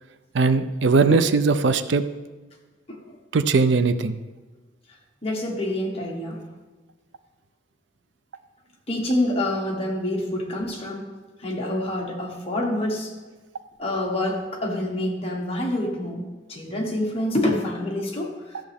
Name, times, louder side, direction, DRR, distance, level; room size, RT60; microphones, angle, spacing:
voice 1, 0.3-2.0 3.3-4.2, right 4 dB, 70° right, 11 dB, 0.5 m, -20 dB
voice 2, 5.2-6.4 8.9-11.1 11.4-13.1 13.8-16.2 16.5-18.7, left 1 dB, 30° left, -1 dB, 1.5 m, -27 dB
13.5 x 7.2 x 3.6 m, 1.3 s
head